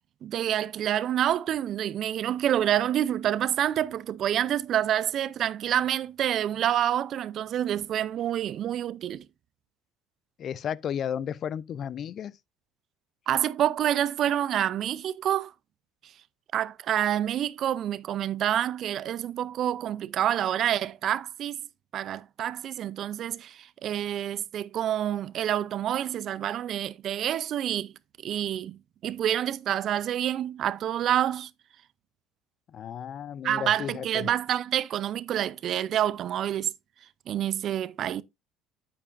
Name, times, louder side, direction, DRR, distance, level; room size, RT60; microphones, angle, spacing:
voice 1, 0.2-9.2 13.3-15.5 16.0-16.1 16.5-21.6 21.9-27.9 28.2-31.5 33.4-36.7 37.3-38.2, right 11 dB, 55° right, 0.5 m, -27 dB
voice 2, 10.4-12.4 32.7-34.3, left 9 dB, 50° left, 0.4 m, -33 dB
8.9 x 8.6 x 2.5 m
supercardioid pair, 85°, 0 cm